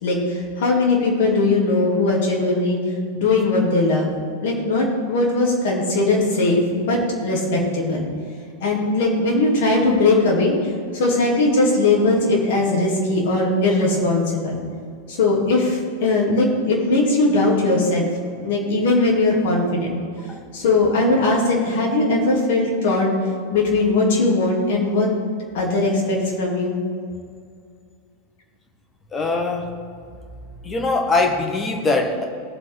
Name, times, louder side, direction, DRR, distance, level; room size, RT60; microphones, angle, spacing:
voice 1, 0.0-2.8 3.1-8.1 8.6-14.6 15.1-18.1 18.3-20.0 20.5-23.1 23.5-25.1 25.5-26.7, left 2 dB, 55° left, -2 dB, 3.3 m, -19 dB
voice 2, 29.1-29.7 30.6-32.2, left 3 dB, 20° left, 3 dB, 1.6 m, -21 dB
19.0 x 7.3 x 4.1 m, 2.2 s
figure-of-eight pair, 90°, 0 cm